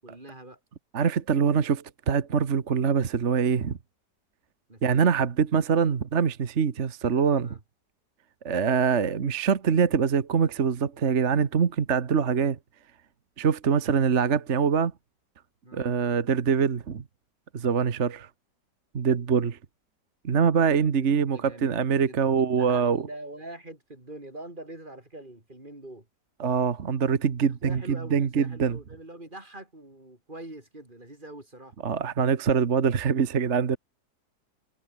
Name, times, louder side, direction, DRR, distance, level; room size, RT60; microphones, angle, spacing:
voice 1, 0.0-0.6 4.7-5.0 7.4-7.6 15.6-15.8 21.0-21.8 22.0-26.1 27.6-31.7, right 1 dB, 30° right, 5.8 m, -44 dB
voice 2, 0.9-3.8 4.8-7.6 8.4-12.6 13.4-14.9 15.7-17.0 17.5-18.3 18.9-19.6 20.2-23.1 26.4-28.8 31.8-33.8, right 6 dB, 45° right, 1.5 m, -24 dB
omnidirectional pair, 1.8 m